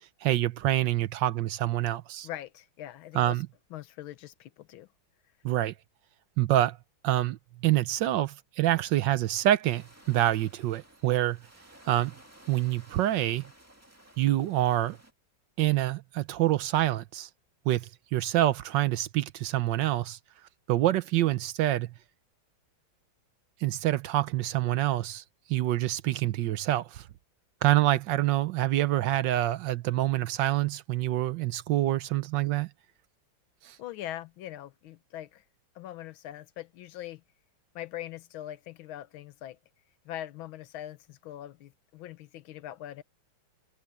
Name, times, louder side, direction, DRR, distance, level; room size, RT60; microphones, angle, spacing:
voice 1, 0.2-2.3 3.1-3.5 5.4-5.7 6.4-6.8 7.0-11.4 11.9-12.1 12.5-13.4 14.2-15.0 15.6-17.3 17.7-20.2 20.7-21.9 23.6-25.2 25.5-27.0 27.6-32.7 33.6-33.8, right 14 dB, 75° right, 1.3 m, -26 dB
voice 2, 2.2-3.4 3.7-4.9 33.8-35.4 35.7-37.2 37.7-39.6 40.0-43.0, left 13 dB, 85° left, 1.6 m, -42 dB
sound 1, 9.6-15.1, right 1 dB, 10° right, 1.9 m, -55 dB
omnidirectional pair, 2.2 m